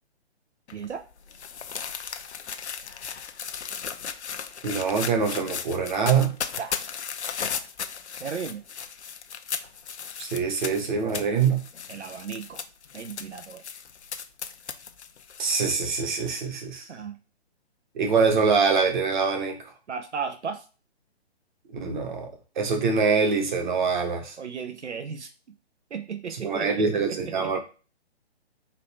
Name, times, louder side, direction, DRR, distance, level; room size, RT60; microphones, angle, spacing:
sound 1, 0.7-15.7, left 7 dB, 75° left, 0.7 m, -36 dB
voice 1, 0.7-1.0 6.6-6.7 8.2-8.6 11.9-12.6 12.9-13.6 16.9-17.2 19.9-20.6 24.4-25.3 25.9-27.6, right 6 dB, 90° right, 7 dB, 0.7 m, -35 dB
voice 2, 4.6-6.3 10.2-11.6 15.4-16.8 17.9-19.6 21.7-22.3 22.6-24.3 26.4-27.6, right 5 dB, 45° right, 4 dB, 1.3 m, -24 dB
4.1 x 2.7 x 4.2 m, 0.34 s
figure-of-eight pair, 145°, 33 cm